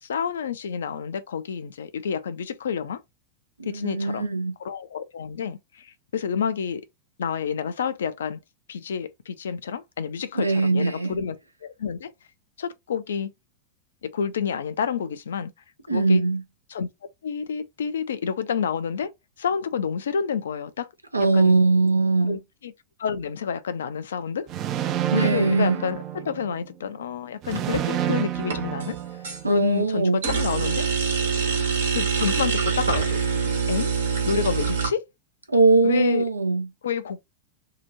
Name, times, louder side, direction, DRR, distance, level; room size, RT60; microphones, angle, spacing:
voice 1, 0.0-3.0 3.7-4.3 4.6-6.9 7.2-8.4 8.7-11.4 11.6-12.1 12.6-13.3 14.0-15.5 15.9-16.2 16.7-16.9 17.2-19.1 19.4-20.9 21.2-21.6 22.2-22.7 23.0-24.5 25.1-29.0 29.5-30.9 31.9-33.2 33.7-33.9 34.3-35.0 35.8-36.2 36.8-37.2, left 7 dB, 65° left, 0.4 m, -29 dB
voice 2, 3.6-4.5 10.3-11.2 15.9-16.4 21.1-22.4 25.1-25.8 29.4-30.2 35.5-36.7, right 3 dB, 85° right, 0.6 m, -21 dB
sound 1, 24.5-26.7 27.4-29.6, right 11 dB, 35° right, 0.4 m, -29 dB
sound 2, 27.5-28.0 28.4-29.4 30.2-34.9, right 6 dB, 65° right, 1.1 m, -25 dB
2.8 x 2.4 x 4.2 m
figure-of-eight pair, 90°, 0 cm